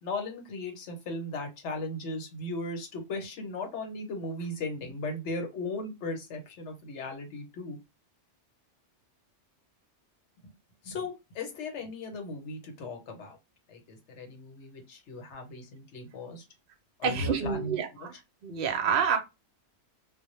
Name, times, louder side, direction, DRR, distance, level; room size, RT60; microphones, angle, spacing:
voice 1, 0.0-7.8 10.4-10.5 10.8-13.4 13.7-16.4 17.0-17.7, left 2 dB, 75° left, 1.0 m, -37 dB
voice 2, 17.0-18.1 18.4-19.2, right 6 dB, 60° right, 0.7 m, -28 dB
2.2 x 2.0 x 2.9 m
omnidirectional pair, 1.2 m